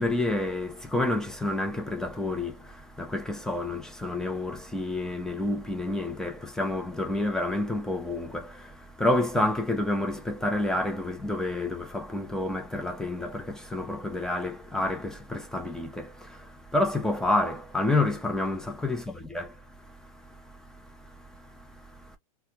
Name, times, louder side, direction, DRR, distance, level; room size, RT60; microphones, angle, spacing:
voice 1, 0.0-19.5, left 2 dB, 5° left, 0.7 m, -29 dB
3.5 x 2.3 x 2.7 m
hypercardioid pair, 125°, 20 cm